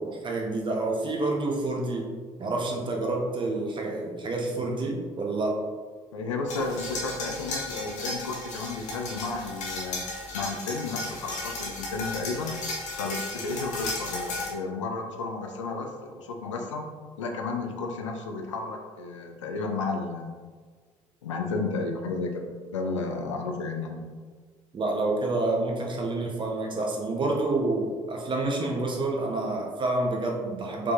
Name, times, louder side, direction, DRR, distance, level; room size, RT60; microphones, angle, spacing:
voice 1, 0.0-2.1 2.4-5.5 24.7-30.9, right 2 dB, 30° right, -1 dB, 0.9 m, -28 dB
voice 2, 6.1-10.0 10.3-12.5 13.0-16.9 17.2-20.5 21.2-22.5 22.7-24.0, left 3 dB, 75° left, 3 dB, 0.5 m, -32 dB
sound 1, 6.5-14.5, left 2 dB, 50° left, 1.1 m, -35 dB
4.9 x 3.5 x 2.9 m, 1.5 s
figure-of-eight pair, 55°, 16 cm